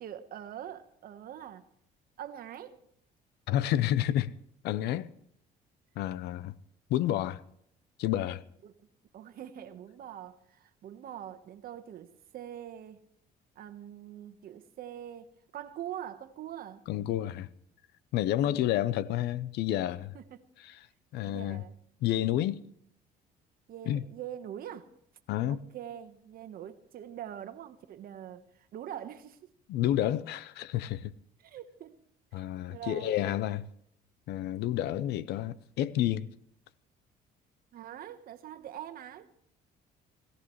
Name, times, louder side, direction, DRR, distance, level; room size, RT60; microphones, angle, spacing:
voice 1, 0.0-1.7 2.2-2.8 8.6-8.7 9.1-13.0 13.5-16.9 18.4-18.7 20.1-20.4 21.2-21.7 23.7-24.9 25.5-29.4 31.4-32.0 32.3-33.3 37.7-39.3, right 10 dB, 60° right, 1.2 m, -44 dB
voice 2, 3.5-4.3 4.6-5.1 6.0-6.5 6.9-7.4 8.0-8.4 16.9-17.5 18.1-20.1 21.1-21.6 22.0-22.6 23.9-24.0 25.3-25.6 29.7-31.1 32.3-33.7 34.3-36.3, left 12 dB, 80° left, 0.6 m, -29 dB
21.0 x 16.0 x 3.1 m
cardioid pair, 110°, 17 cm